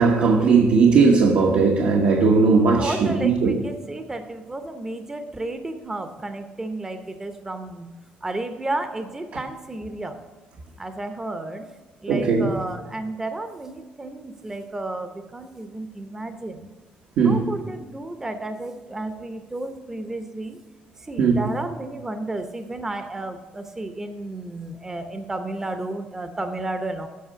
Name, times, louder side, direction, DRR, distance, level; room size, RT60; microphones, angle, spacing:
voice 1, 0.0-3.5 12.1-12.5 17.2-17.5 21.2-21.4, right 4 dB, 70° right, 0 dB, 1.2 m, -18 dB
voice 2, 2.6-7.9 8.2-10.2 10.8-11.7 12.0-16.7 17.2-20.6 21.0-27.1, right 2 dB, 15° right, 8 dB, 0.7 m, -32 dB
8.3 x 5.3 x 7.7 m, 1.2 s
cardioid pair, 115°, 3 cm